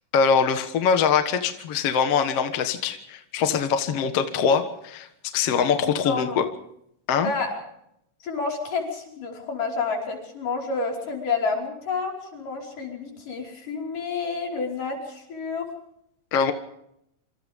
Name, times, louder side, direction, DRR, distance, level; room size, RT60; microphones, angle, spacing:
voice 1, 0.1-5.1 5.3-6.5 7.1-7.3 16.3-16.5, left 6 dB, 55° left, 7 dB, 2.1 m, -23 dB
voice 2, 6.0-6.5 7.2-7.6 8.2-15.7, left 4 dB, 75° left, 0 dB, 6.7 m, -29 dB
27.0 x 26.5 x 3.6 m, 0.76 s
omnidirectional pair, 3.8 m